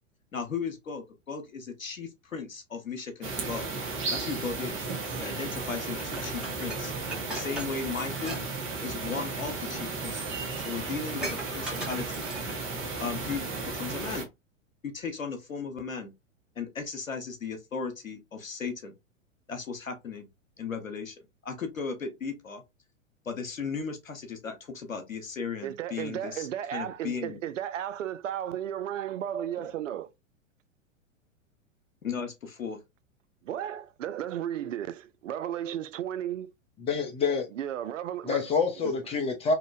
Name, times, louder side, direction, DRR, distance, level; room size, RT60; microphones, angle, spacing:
voice 1, 0.3-3.7 4.1-4.9 5.2-6.9 7.3-8.4 8.8-10.3 10.6-12.3 13.0-14.3 14.8-16.1 16.6-18.9 19.5-20.3 20.6-21.1 21.4-22.6 23.2-27.4 29.6-29.7 32.0-32.8, left 5 dB, 90° left, 0.8 m, -36 dB
sound 1, 3.2-14.2, right 3 dB, 30° right, 1.1 m, -34 dB
Dishes pots and pans, 6.0-8.4 8.7-8.9 9.8-9.9 10.2-10.3 10.5-12.7 13.2-13.3, right 1 dB, ahead, 1.2 m, -40 dB
voice 2, 25.6-30.1 33.4-36.5 37.5-38.4 38.8-38.9, right 10 dB, 70° right, 0.5 m, -34 dB
voice 3, 36.8-37.5 38.2-39.5, left 4 dB, 15° left, 0.6 m, -27 dB
2.9 x 2.6 x 2.4 m
figure-of-eight pair, 100°, 39 cm